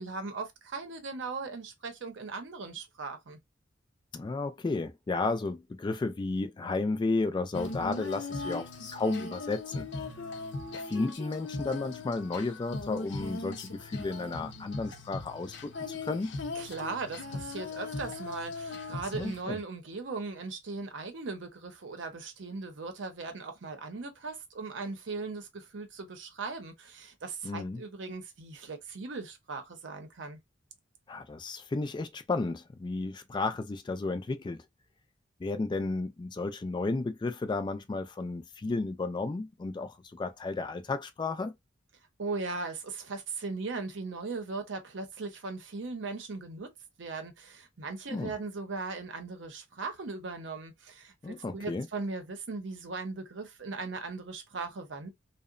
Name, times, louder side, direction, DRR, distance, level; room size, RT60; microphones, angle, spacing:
voice 1, 0.0-3.4 16.5-30.4 42.2-46.7 47.0-55.1, right 4 dB, 70° right, 0.7 m, -38 dB
voice 2, 4.1-9.9 10.7-16.3 19.2-19.6 27.4-27.8 31.1-34.6 35.4-41.5 48.1-48.3 51.2-51.9, left 3 dB, 25° left, 0.3 m, -33 dB
Female singing, 7.5-19.4, left 3 dB, 65° left, 0.6 m, -39 dB
2.8 x 2.0 x 2.4 m
head